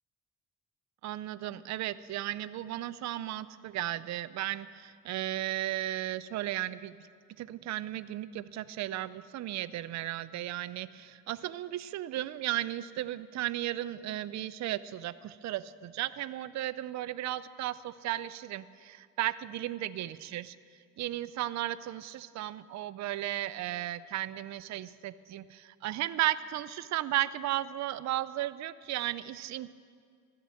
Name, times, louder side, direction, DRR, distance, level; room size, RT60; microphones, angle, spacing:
voice 1, 1.0-6.9 7.4-20.6 21.0-29.7, right 14 dB, 60° right, 16 dB, 0.4 m, -35 dB
13.5 x 6.9 x 7.6 m, 2.1 s
cardioid pair, 100°, 33 cm